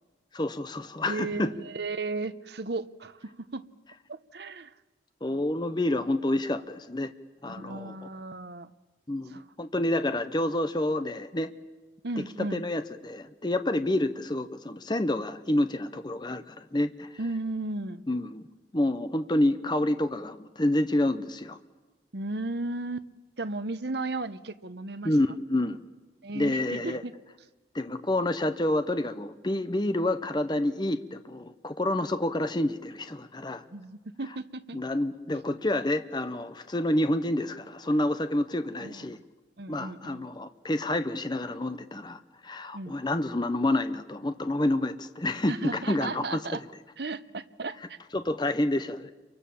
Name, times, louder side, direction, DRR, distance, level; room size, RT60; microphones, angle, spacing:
voice 1, 0.3-1.5 5.2-7.1 7.4-8.0 9.1-11.5 12.5-17.2 18.1-18.5 18.7-21.6 25.0-25.8 26.3-27.0 27.7-33.6 34.7-39.2 39.7-46.6 48.1-49.1, left 1 dB, 25° left, 10 dB, 0.8 m, -28 dB
voice 2, 1.0-3.6 4.1-4.7 7.4-8.7 9.3-9.4 12.0-12.6 17.2-18.0 22.1-23.1 23.4-25.1 26.2-27.1 33.7-34.8 38.8-39.2 39.6-40.3 42.7-43.0 45.5-46.6 47.0-48.0, right 3 dB, 60° right, 12 dB, 1.0 m, -35 dB
29.5 x 24.0 x 7.1 m, 1.2 s
head